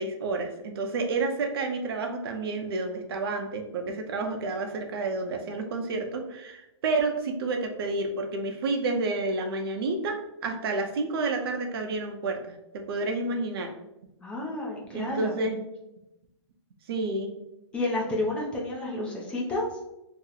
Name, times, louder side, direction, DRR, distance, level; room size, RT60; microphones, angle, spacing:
voice 1, 0.0-13.7 14.9-15.6 16.9-17.3, right 3 dB, 55° right, 4 dB, 0.5 m, -30 dB
voice 2, 14.2-15.3 17.7-19.7, left 2 dB, 5° left, -3 dB, 0.3 m, -30 dB
2.9 x 2.0 x 3.8 m, 0.88 s
hypercardioid pair, 165°, 15 cm